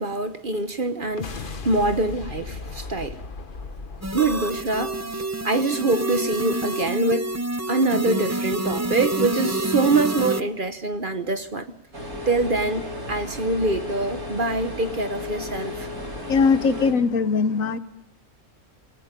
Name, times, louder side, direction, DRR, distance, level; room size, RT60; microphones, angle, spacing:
voice 1, 0.0-3.2 4.1-7.3 7.7-11.7 12.3-15.9, right 2 dB, 40° right, 1.1 m, -24 dB
sound 1, 1.0-5.6, left 4 dB, 40° left, 1.2 m, -37 dB
sound 2, 4.0-10.4, right 1 dB, 20° right, 0.4 m, -27 dB
sound 3, 11.9-16.9, left 2 dB, 75° right, 4.8 m, -34 dB
voice 2, 16.3-17.8, left 5 dB, 65° left, 1.3 m, -20 dB
28.0 x 17.5 x 5.2 m
omnidirectional pair, 1.5 m